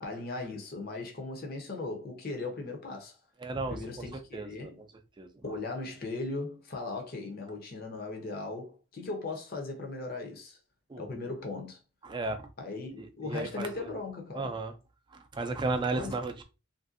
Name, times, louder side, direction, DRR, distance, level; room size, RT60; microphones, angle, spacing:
voice 1, 0.0-3.2 3.7-4.8 5.4-10.6 11.0-11.8 12.6-14.6 16.0-16.2, left 3 dB, 45° left, 0.7 m, -38 dB
voice 2, 3.4-3.8 4.3-4.7 5.2-5.3 10.9-11.0 12.0-12.5 13.0-13.7 14.3-14.7 15.3-16.4, right 3 dB, 20° right, 0.3 m, -33 dB
3.1 x 2.6 x 2.4 m
head